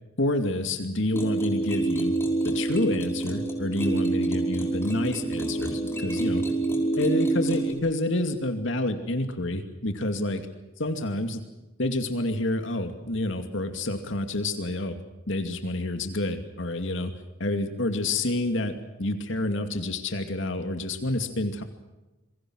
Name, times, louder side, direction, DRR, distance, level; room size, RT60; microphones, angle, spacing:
voice 1, 0.2-2.2 2.4-6.4 7.0-10.5 10.8-11.4 11.8-15.0 15.3-17.1 17.4-18.7 19.0-21.6, left 1 dB, 65° left, 7 dB, 2.5 m, -28 dB
sound 1, 1.1-7.7, right 2 dB, 10° left, 5.2 m, -27 dB
27.5 x 23.0 x 6.4 m, 1.1 s
head